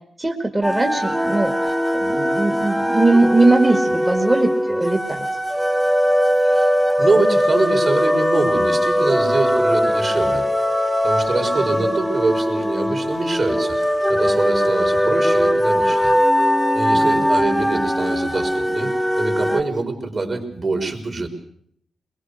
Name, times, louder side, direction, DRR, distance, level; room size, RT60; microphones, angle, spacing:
voice 1, 0.2-5.2 11.6-11.9 16.9-17.2, right 2 dB, 20° right, 3 dB, 1.9 m, -20 dB
sound 1, 0.6-19.6, equal, ahead, 1.3 m, -20 dB
voice 2, 6.4-10.4 11.0-13.8 14.1-16.1 16.7-21.3, right 3 dB, 45° right, 4 dB, 4.3 m, -24 dB
23.0 x 21.5 x 6.5 m, 0.65 s
cardioid pair, 90°, 0 cm